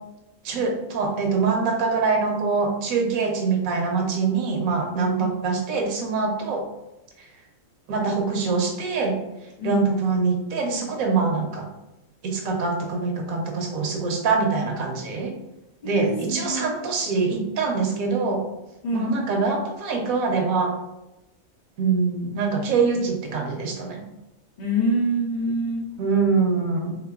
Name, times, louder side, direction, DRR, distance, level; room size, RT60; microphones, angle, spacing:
voice 1, 0.4-6.6 7.9-9.2 9.6-11.7 12.2-15.3 15.8-18.4 18.9-20.7 21.8-24.0 26.0-27.0, right 4 dB, 90° right, 2 dB, 1.1 m, -24 dB
voice 2, 9.6-9.9 15.8-16.7 18.8-19.2 24.6-25.9, equal, 65° left, -2 dB, 0.4 m, -26 dB
3.4 x 2.8 x 2.3 m, 0.91 s
omnidirectional pair, 1.4 m